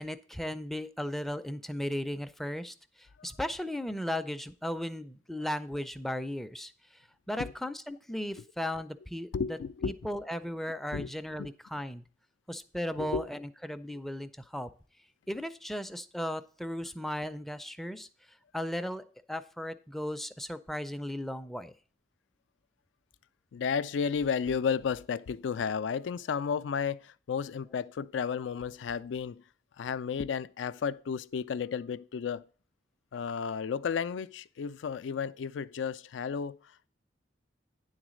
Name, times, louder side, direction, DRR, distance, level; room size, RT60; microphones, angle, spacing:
voice 1, 0.0-2.7 3.2-6.7 7.3-9.6 9.8-12.0 12.5-14.7 15.3-18.1 18.5-21.7, equal, ahead, 0.4 m, -36 dB
voice 2, 9.3-10.0 10.9-11.1 11.4-11.5 13.0-13.3 23.5-29.4 29.8-32.5 33.1-36.6, left 6 dB, 80° left, 0.4 m, -33 dB
9.8 x 4.0 x 6.2 m
head